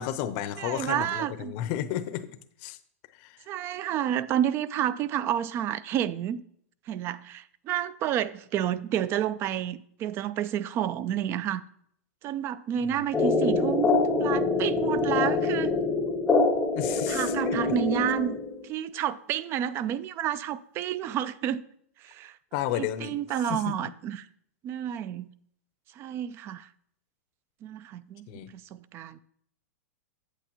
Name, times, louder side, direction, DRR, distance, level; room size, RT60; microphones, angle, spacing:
voice 1, 0.0-2.3 2.6-2.8 3.2-3.4 16.7-17.7 22.5-23.2 23.5-23.9 28.3-28.5, left 11 dB, 45° left, 0.6 m, -32 dB
voice 2, 0.6-1.5 3.5-6.4 6.9-11.6 12.2-13.9 14.2-15.7 17.1-18.4 18.6-21.6 22.0-22.4 22.8-24.3 24.6-25.3 26.0-26.7 27.6-28.4 28.7-29.2, right 10 dB, 30° right, 0.4 m, -30 dB
sound 1, 13.1-18.7, left 3 dB, 10° left, 0.7 m, -25 dB
8.3 x 7.9 x 3.0 m
hypercardioid pair, 135°, 8 cm